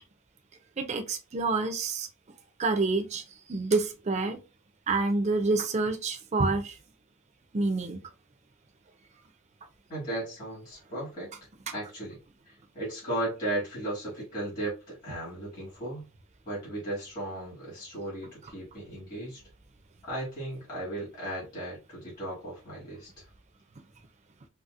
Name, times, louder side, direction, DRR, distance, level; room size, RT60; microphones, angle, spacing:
voice 1, 0.8-2.1 2.6-3.2 3.5-4.4 4.9-6.8 7.5-8.0, right 3 dB, 35° right, 0.5 m, -27 dB
voice 2, 9.9-11.3 11.7-12.2 12.5-16.1 16.4-19.4 20.0-23.3, right 1 dB, 45° left, 1.8 m, -36 dB
4.1 x 2.1 x 2.4 m
head